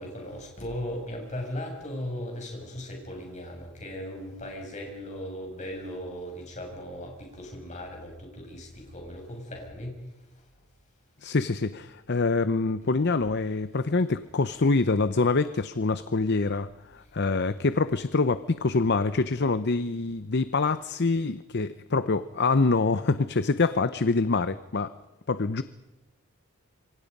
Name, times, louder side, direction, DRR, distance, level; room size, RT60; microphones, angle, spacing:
voice 1, 0.0-10.1 17.3-17.4, equal, 35° left, 1 dB, 7.0 m, -37 dB
voice 2, 11.2-24.9 25.3-25.6, left 3 dB, 50° left, 13 dB, 0.7 m, -25 dB
27.0 x 24.5 x 5.4 m, 1.0 s
head